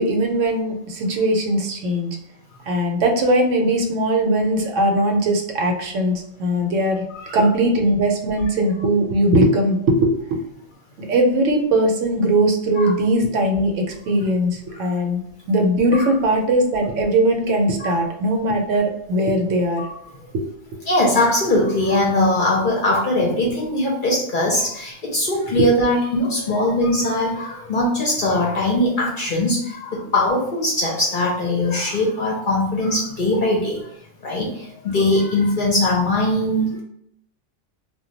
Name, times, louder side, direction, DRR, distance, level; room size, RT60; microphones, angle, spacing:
voice 1, 0.0-2.2 2.7-7.0 7.3-10.4 11.0-19.8 20.3-20.4 25.5-25.6, right 1 dB, 80° right, 2 dB, 0.9 m, -20 dB
voice 2, 20.9-33.9 34.2-36.8, left 1 dB, 55° left, -2 dB, 0.6 m, -21 dB
2.2 x 2.2 x 3.8 m, 0.72 s
omnidirectional pair, 1.3 m